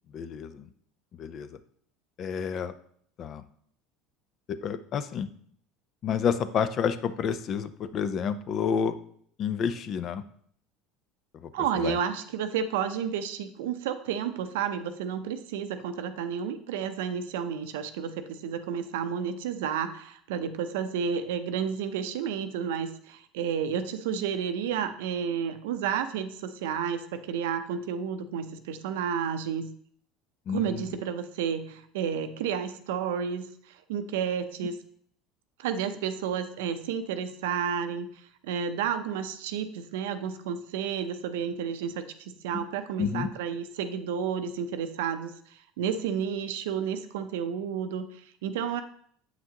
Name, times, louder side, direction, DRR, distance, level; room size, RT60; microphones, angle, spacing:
voice 1, 0.1-0.7 1.1-1.6 2.2-2.7 3.2-3.4 4.5-5.3 6.0-9.0 9.4-10.2 11.3-11.5 11.8-12.0 30.5-31.0 42.5-42.6 43.0-43.3, left 7 dB, 45° left, 12 dB, 0.5 m, -30 dB
voice 2, 11.5-29.7 30.5-34.8 35.6-38.1 38.4-48.8, right 7 dB, 85° right, 9 dB, 0.6 m, -31 dB
7.6 x 5.9 x 2.9 m, 0.62 s
supercardioid pair, 115°, 0 cm